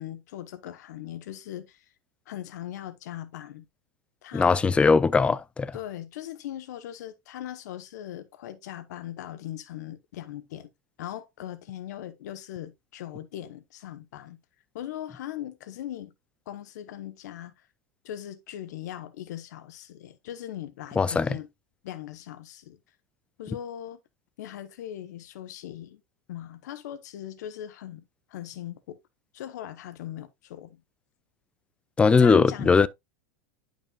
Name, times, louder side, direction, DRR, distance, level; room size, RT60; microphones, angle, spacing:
voice 1, 0.0-1.8 2.3-3.7 4.2-4.6 5.7-10.7 11.0-14.4 14.7-16.1 16.5-17.7 18.0-21.5 21.8-22.8 23.4-24.0 24.4-26.0 26.3-28.0 28.3-29.0 29.3-30.8 32.1-32.9, left 12 dB, 75° left, 0.9 m, -39 dB
voice 2, 4.3-5.8 21.0-21.4 32.0-32.9, left 4 dB, 10° left, 0.3 m, -20 dB
11.0 x 5.2 x 2.3 m
supercardioid pair, 130°, 9 cm